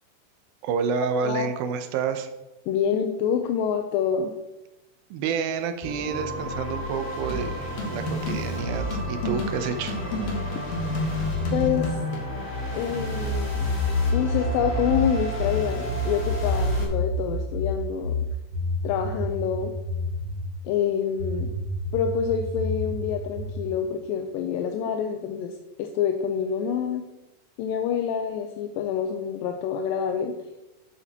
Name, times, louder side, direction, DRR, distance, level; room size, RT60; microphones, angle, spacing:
voice 1, 0.6-2.3 5.1-10.0, right 6 dB, 80° right, 8 dB, 2.5 m, -29 dB
voice 2, 2.7-4.3 11.5-12.0 12.8-13.7 14.1-18.3 18.8-19.7 20.7-21.5 21.9-27.0 27.6-30.3, left 8 dB, 80° left, 5 dB, 2.2 m, -27 dB
sound 1, 5.8-16.8, equal, 20° left, 2.0 m, -31 dB
sound 2, 7.3-12.3, left 1 dB, 55° left, 2.4 m, -31 dB
sound 3, 13.2-20.5 21.2-23.7, left 2 dB, 55° right, 2.2 m, -28 dB
13.5 x 7.1 x 2.9 m, 1.0 s
omnidirectional pair, 4.3 m